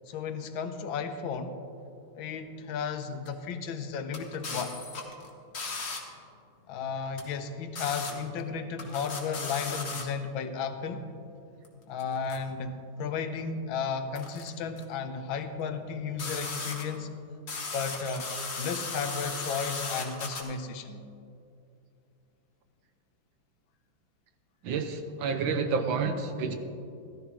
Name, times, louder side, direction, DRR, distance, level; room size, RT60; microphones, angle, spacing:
voice 1, 0.1-1.6 2.1-4.8 6.7-11.1 11.9-17.1 17.7-18.3 18.6-21.1, left 5 dB, 85° left, 8 dB, 1.5 m, -34 dB
sound 1, 3.3-3.4 4.1-6.0 7.2-7.3 7.8-8.1 8.4-8.5 8.8-10.0 11.6-11.7 12.0-12.4 14.2-14.5 14.8-14.9 16.2-17.0 17.5-20.4, left 3 dB, 40° left, 1.3 m, -36 dB
voice 2, 24.6-26.6, right 5 dB, 80° right, 7 dB, 1.6 m, -29 dB
14.0 x 13.0 x 3.0 m, 2.6 s
omnidirectional pair, 2.1 m